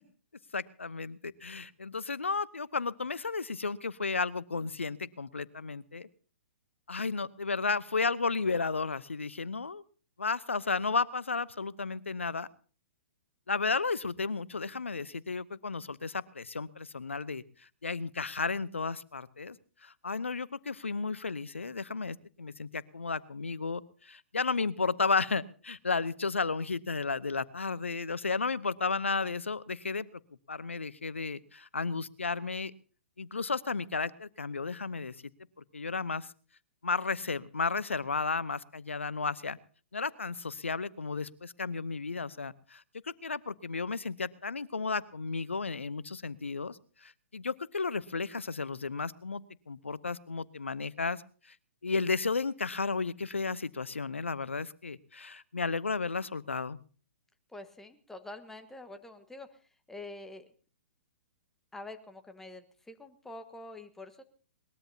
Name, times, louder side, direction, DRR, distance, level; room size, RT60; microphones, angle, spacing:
voice 1, 0.5-6.1 6.9-9.8 10.2-12.5 13.5-17.4 17.8-19.6 19.8-30.2 30.5-32.7 33.2-35.1 35.7-36.3 36.8-39.6 39.9-51.2 51.8-56.8, left 4 dB, 75° left, 19 dB, 0.9 m, -33 dB
voice 2, 57.5-59.5 59.9-60.5 61.7-64.2, left 2 dB, 5° left, 8 dB, 1.5 m, -46 dB
21.5 x 20.5 x 2.9 m, 0.40 s
figure-of-eight pair, 115°, 7 cm